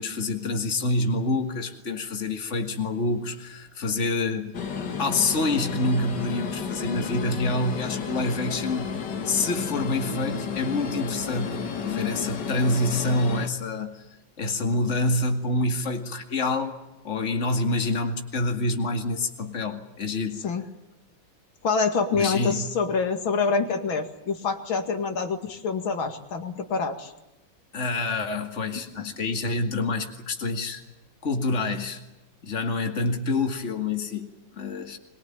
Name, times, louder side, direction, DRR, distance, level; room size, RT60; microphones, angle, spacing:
voice 1, 0.0-4.6 5.0-11.5 11.8-14.1 14.4-16.8 17.0-20.4 22.1-22.7 27.7-30.8 31.2-32.0 32.4-34.3 34.6-35.0, left 2 dB, 35° left, 5 dB, 2.4 m, -27 dB
sound 1, 4.5-13.5, left 6 dB, 60° left, 2.2 m, -32 dB
voice 2, 21.6-27.1, left 4 dB, 85° left, 6 dB, 2.9 m, -26 dB
23.0 x 21.5 x 9.0 m, 0.96 s
omnidirectional pair, 2.1 m